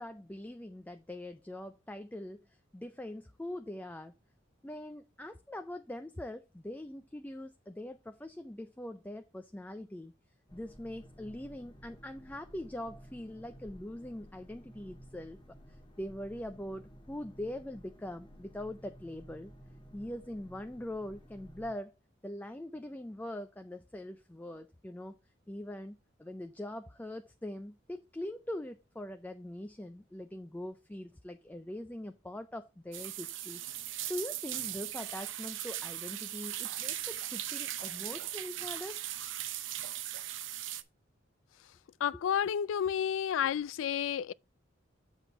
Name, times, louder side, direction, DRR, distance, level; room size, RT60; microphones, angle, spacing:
voice 1, 0.0-4.1 4.6-10.1 10.5-15.4 16.0-19.5 19.9-21.9 22.2-25.2 25.5-33.6 34.1-39.0, left 1 dB, 10° left, 0.4 m, -42 dB
sound 1, 10.5-21.7, equal, 25° left, 1.1 m, -54 dB
sound 2, 32.9-40.8, right 12 dB, 75° right, 0.6 m, -39 dB
voice 2, 42.0-44.3, left 8 dB, 85° left, 0.3 m, -31 dB
7.2 x 4.2 x 5.7 m
head